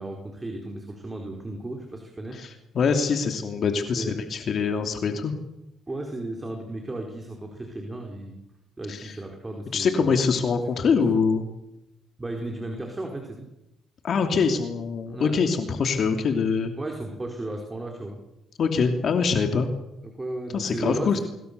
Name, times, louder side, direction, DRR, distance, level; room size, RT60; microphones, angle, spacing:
voice 1, 0.0-2.4 4.0-4.1 5.9-8.4 8.8-10.2 10.9-11.1 12.2-13.5 15.1-15.3 16.8-18.2 20.0-21.2, right 2 dB, 20° right, 2 dB, 4.6 m, -34 dB
voice 2, 2.3-5.3 8.9-9.2 9.7-11.5 14.0-16.7 18.6-19.7 20.5-21.2, left 5 dB, 60° left, 5 dB, 2.9 m, -24 dB
26.0 x 22.0 x 6.9 m, 0.91 s
cardioid pair, 90°, 0 cm